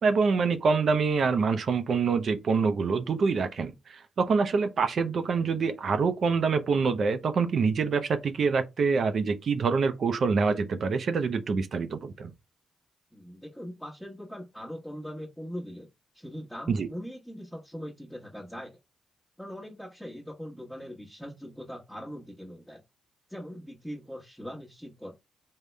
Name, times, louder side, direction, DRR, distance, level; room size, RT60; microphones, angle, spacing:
voice 1, 0.0-12.3 16.7-16.9, right 5 dB, 60° right, 0.5 m, -26 dB
voice 2, 13.1-15.9 16.1-18.8 19.4-22.8 23.3-25.1, equal, ahead, 1.1 m, -41 dB
3.6 x 2.1 x 3.2 m
supercardioid pair, 60°, 0 cm